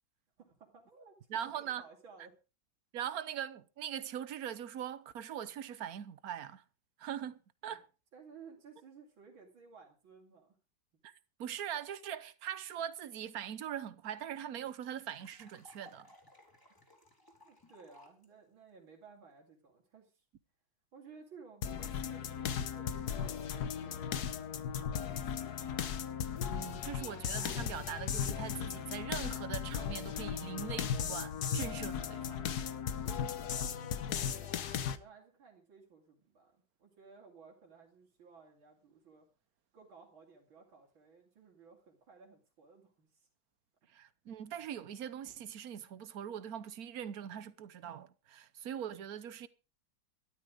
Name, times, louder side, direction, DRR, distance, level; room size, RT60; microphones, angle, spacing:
voice 1, 0.4-1.1 1.4-1.5 1.8-2.3 7.7-7.8 8.1-10.6 17.4-20.2 20.9-24.4 24.7-25.4 33.0-39.3 39.7-43.3, right 5 dB, 85° right, 3.5 m, -57 dB
voice 2, 1.3-1.8 2.9-6.6 7.0-7.8 11.0-16.1 26.5-32.5 43.9-49.5, right 9 dB, 55° right, 1.2 m, -42 dB
sound 1, 13.5-13.6 13.8-13.9 14.1-18.3, left 1 dB, 10° left, 3.7 m, -60 dB
sound 2, 21.6-35.0, left 8 dB, 60° left, 1.4 m, -37 dB
13.5 x 12.5 x 5.0 m
omnidirectional pair, 2.1 m